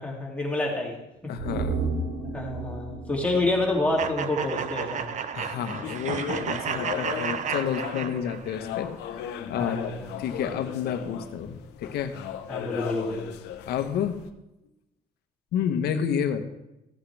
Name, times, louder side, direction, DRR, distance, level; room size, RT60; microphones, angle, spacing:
voice 1, 0.0-1.3 2.3-5.1 9.5-10.1 12.5-13.3, left 2 dB, 10° left, -3 dB, 2.7 m, -28 dB
voice 2, 1.3-2.2 5.3-9.9 10.2-12.2 13.7-14.2 15.5-16.4, left 8 dB, 70° left, 7 dB, 1.2 m, -30 dB
sound 1, 1.4-4.8 5.1-5.2, right 3 dB, 80° right, 3.0 m, -33 dB
sound 2, 4.0-8.6, right 7 dB, 45° right, 0.7 m, -32 dB
sound 3, 5.8-14.3, left 9 dB, 90° left, 0.9 m, -37 dB
15.5 x 8.5 x 3.4 m, 0.92 s
cardioid pair, 110°, 17 cm